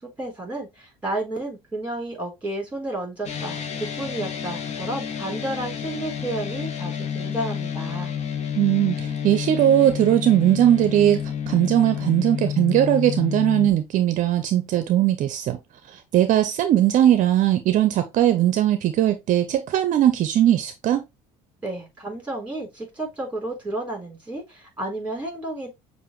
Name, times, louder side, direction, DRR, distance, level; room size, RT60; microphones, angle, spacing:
voice 1, 0.0-8.1 21.6-25.7, right 1 dB, 10° right, 3.6 m, -32 dB
sound 1, 3.2-13.7, left 8 dB, 45° left, 1.0 m, -30 dB
voice 2, 8.6-15.6 15.9-21.0, right 12 dB, 55° right, 0.6 m, -19 dB
6.7 x 2.6 x 3.1 m
supercardioid pair, 95°, 15 cm